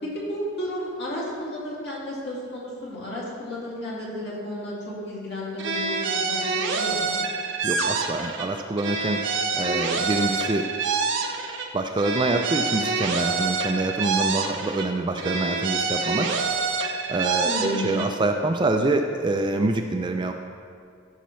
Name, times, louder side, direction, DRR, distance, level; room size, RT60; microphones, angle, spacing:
voice 1, 0.0-7.2 17.4-18.0, left 1 dB, 55° left, -6 dB, 2.3 m, -33 dB
sound 1, 5.6-8.5 8.8-11.7 12.0-14.9 15.2-18.1, right 4 dB, 55° right, 0.7 m, -27 dB
voice 2, 7.6-9.2 9.5-10.7 11.7-16.4 17.1-20.3, right 2 dB, 20° right, 5 dB, 0.4 m, -25 dB
14.0 x 5.7 x 3.1 m, 2.2 s
head